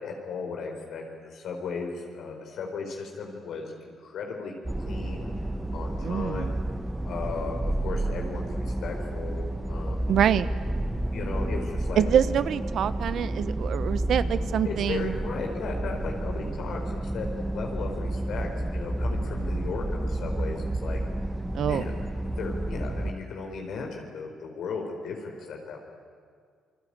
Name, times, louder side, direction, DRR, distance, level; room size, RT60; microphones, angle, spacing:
voice 1, 0.0-4.5 4.8-5.3 5.7-6.6 7.0-10.1 11.1-12.0 14.6-21.0 21.6-21.9 22.4-25.8, left 4 dB, 70° left, 2 dB, 4.4 m, -36 dB
sound 1, 4.6-23.1, right 1 dB, 10° right, 1.1 m, -30 dB
voice 2, 6.0-6.5 10.1-10.5 12.0-15.2 21.5-21.8, right 9 dB, 70° right, 13 dB, 1.0 m, -25 dB
27.5 x 21.5 x 8.8 m, 2.1 s
cardioid pair, 90°, 0 cm